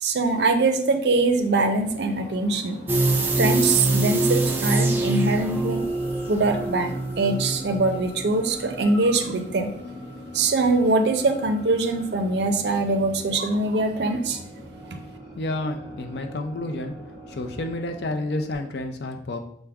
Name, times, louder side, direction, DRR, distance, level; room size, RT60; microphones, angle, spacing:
voice 1, 0.0-2.8 3.3-5.8 6.3-9.7 10.3-14.4, right 3 dB, 65° right, 7 dB, 0.5 m, -23 dB
sound 1, 1.3-18.5, equal, 20° left, 1.2 m, -42 dB
sound 2, 2.9-9.7 10.0-10.1, right 2 dB, 10° right, 0.3 m, -25 dB
voice 2, 15.4-16.9 17.3-19.4, left 2 dB, 65° left, 5 dB, 0.4 m, -30 dB
5.7 x 2.1 x 3.4 m, 0.71 s
head